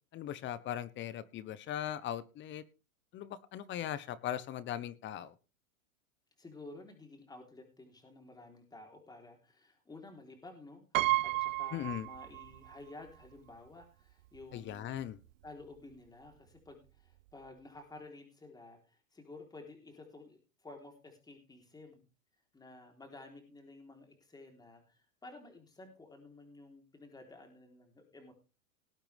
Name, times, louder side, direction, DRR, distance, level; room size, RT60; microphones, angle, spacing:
voice 1, 0.1-2.6 3.1-5.3 11.7-12.1 14.5-15.2, left 11 dB, 25° left, 17 dB, 1.1 m, -39 dB
voice 2, 6.4-15.0 15.4-22.0 22.5-28.3, left 2 dB, 10° left, 4 dB, 3.8 m, -53 dB
Piano, 10.9-12.8 13.1-13.2 14.3-14.4 14.7-15.0, right 18 dB, 70° right, 0.5 m, -32 dB
19.0 x 8.8 x 3.5 m, 0.32 s
hypercardioid pair, 125°, 41 cm